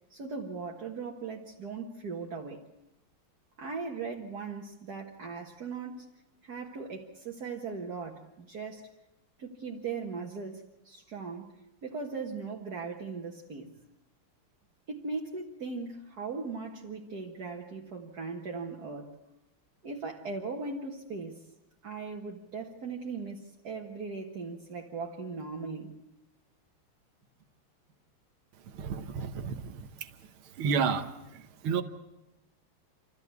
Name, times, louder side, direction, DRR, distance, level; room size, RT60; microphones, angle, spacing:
voice 1, 0.1-2.6 3.6-6.1 6.4-8.9 9.4-11.5 11.8-13.7 14.9-19.1 19.8-21.5 21.8-25.9, right 4 dB, 50° right, 2.1 m, -39 dB
voice 2, 28.8-29.6 30.6-31.1 31.6-31.8, right 6 dB, 75° right, 2.0 m, -29 dB
27.5 x 14.5 x 8.3 m
omnidirectional pair, 2.3 m